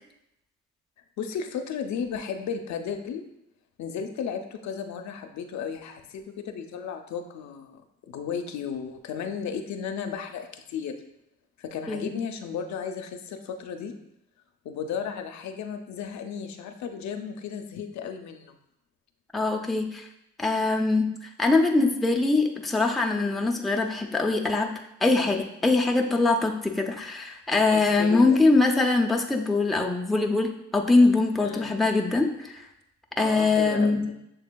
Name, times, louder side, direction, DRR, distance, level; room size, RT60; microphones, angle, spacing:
voice 1, 1.2-3.2 3.8-7.8 8.1-10.9 11.6-13.9 14.6-18.5 27.7-28.4 31.4-31.8 33.2-34.0, left 7 dB, 70° left, 6 dB, 0.5 m, -34 dB
voice 2, 19.3-20.1 20.4-24.7 25.0-32.6 33.2-34.0, left 3 dB, ahead, 1 dB, 0.4 m, -23 dB
6.7 x 3.4 x 2.2 m, 0.83 s
cardioid pair, 90°, 30 cm